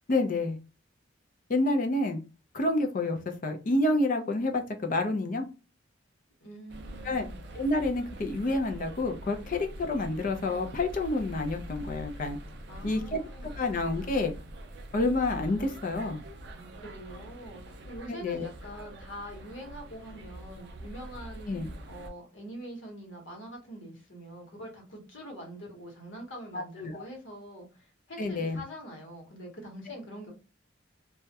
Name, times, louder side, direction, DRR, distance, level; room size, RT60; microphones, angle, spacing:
voice 1, 0.1-0.6 1.5-2.2 2.5-5.5 7.0-7.3 7.5-12.4 12.8-13.2 13.6-14.3 14.9-16.2 18.1-18.5 21.5-21.7 26.5-27.0 28.2-28.6 29.9-30.0, left 2 dB, 45° left, 5 dB, 0.4 m, -28 dB
voice 2, 6.4-7.3 12.7-13.6 16.5-21.5 21.9-30.3, equal, 70° left, 1 dB, 1.0 m, -44 dB
sound 1, 6.7-22.1, equal, 60° right, 0.4 m, -44 dB
2.3 x 2.1 x 2.7 m, 0.31 s
head